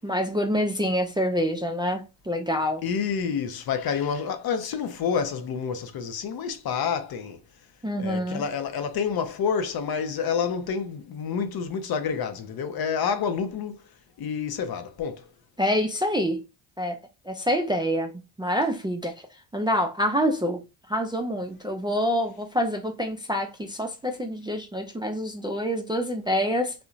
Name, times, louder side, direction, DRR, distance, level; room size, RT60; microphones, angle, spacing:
voice 1, 0.0-2.8 7.8-8.4 15.6-16.4 16.8-17.0 17.3-18.1 18.4-19.1 19.5-20.6 20.9-26.7, equal, 10° right, 0.4 m, -26 dB
voice 2, 2.8-7.4 8.0-13.8 14.2-15.3, left 6 dB, 50° left, 0.6 m, -28 dB
2.6 x 2.2 x 2.4 m
hypercardioid pair, 50°, 49 cm